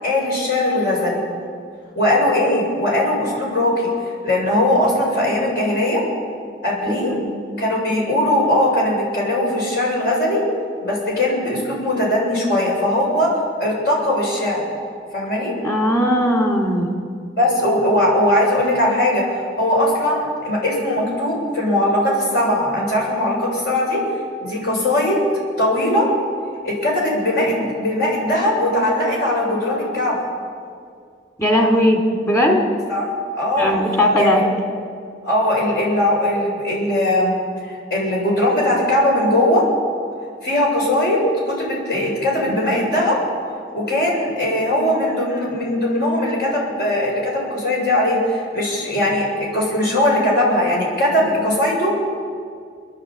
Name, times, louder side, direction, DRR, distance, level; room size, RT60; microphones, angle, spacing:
voice 1, 0.0-1.2 2.0-6.0 6.6-7.1 7.6-10.4 10.8-14.6 15.1-15.5 17.4-24.0 24.4-25.2 25.6-26.1 26.6-30.3 32.9-33.1 33.3-33.8 34.2-34.4 35.2-39.6 40.4-41.2 41.5-43.2 43.7-51.9, left 1 dB, 60° left, -3 dB, 7.4 m, -20 dB
voice 2, 6.9-7.3 15.6-16.9 31.4-32.6 33.6-34.5 42.4-42.6 51.2-51.3, equal, 15° left, 1 dB, 3.3 m, -18 dB
28.5 x 11.0 x 8.8 m, 2.2 s
head